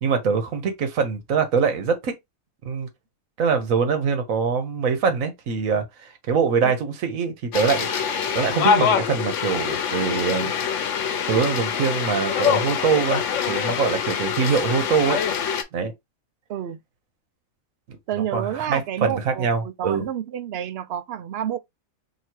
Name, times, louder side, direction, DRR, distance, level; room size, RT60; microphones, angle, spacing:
voice 1, 0.0-2.2 2.6-2.9 3.4-10.5 11.3-13.2 13.5-15.2 15.7-15.9 18.3-20.0, right 5 dB, 80° right, 1.3 m, -23 dB
sound 1, 7.5-15.6, left 7 dB, 70° left, 1.0 m, -24 dB
voice 2, 18.1-21.6, right 10 dB, 60° right, 0.7 m, -29 dB
3.0 x 2.8 x 4.4 m
omnidirectional pair, 1.4 m